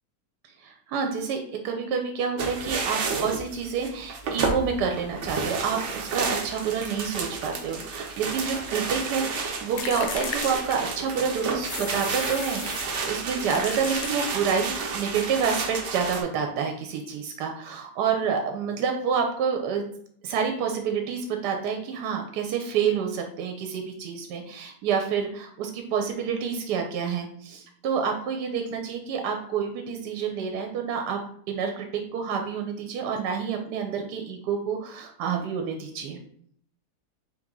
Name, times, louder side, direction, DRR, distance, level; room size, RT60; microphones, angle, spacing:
voice 1, 0.6-1.4 1.6-19.8 20.2-31.2 31.5-36.2, right 6 dB, 85° right, 4 dB, 1.2 m, -28 dB
sound 1, 2.4-16.2, right 4 dB, 60° right, 0.8 m, -31 dB
sound 2, 9.8-11.2 11.6-13.0 13.5-14.6, left 7 dB, 75° left, 1.1 m, -36 dB
3.9 x 3.0 x 3.6 m, 0.62 s
omnidirectional pair, 1.8 m